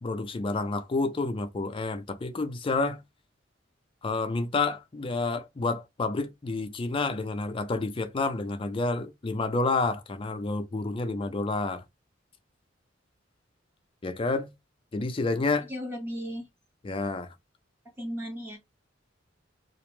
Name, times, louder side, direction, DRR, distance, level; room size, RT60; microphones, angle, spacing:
voice 1, 0.0-3.0 4.0-11.8 14.0-14.5 14.9-15.7 16.8-17.3, left 3 dB, 25° left, 0.4 m, -29 dB
voice 2, 15.7-16.5 18.0-18.6, equal, 10° right, 0.7 m, -35 dB
2.4 x 2.0 x 3.0 m
head